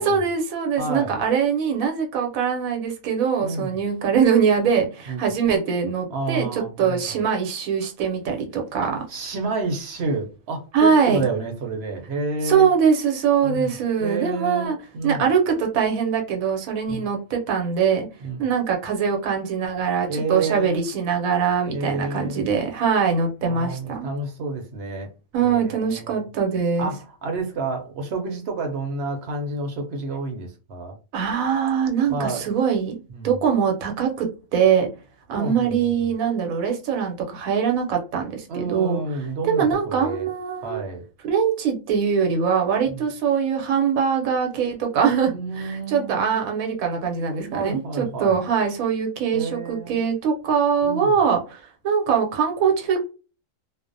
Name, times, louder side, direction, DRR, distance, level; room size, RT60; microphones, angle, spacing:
voice 1, 0.0-9.0 10.7-11.2 12.4-14.8 15.0-18.1 18.4-24.1 25.3-26.9 31.1-33.0 33.2-34.9 35.3-39.0 39.4-40.8 41.3-53.0, right 6 dB, 90° right, 1.1 m, -22 dB
voice 2, 0.8-1.2 3.4-3.8 5.1-5.3 6.1-7.1 8.8-12.7 13.4-13.7 14.0-15.2 16.9-17.0 18.2-18.4 20.1-20.8 21.7-22.5 23.5-25.1 25.4-26.2 26.8-31.0 32.1-32.5 33.1-33.4 35.3-35.7 38.5-40.3 40.6-41.0 42.9-43.0 45.3-46.4 47.5-48.4 49.3-50.1 50.8-51.2, right 3 dB, 60° right, 0.8 m, -29 dB
2.4 x 2.0 x 2.5 m
omnidirectional pair, 1.4 m